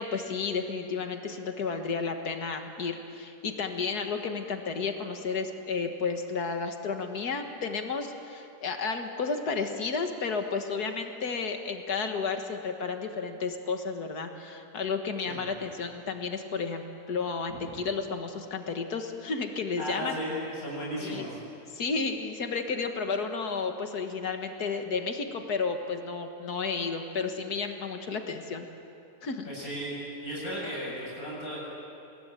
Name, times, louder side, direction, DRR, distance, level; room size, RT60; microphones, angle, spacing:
voice 1, 0.0-20.2 21.0-21.3 21.7-28.7 29.2-29.5, left 4 dB, 85° left, 5 dB, 2.1 m, -32 dB
voice 2, 19.8-21.4 29.4-31.6, equal, 65° left, -5 dB, 8.0 m, -35 dB
26.5 x 20.5 x 9.0 m, 2.7 s
omnidirectional pair, 1.6 m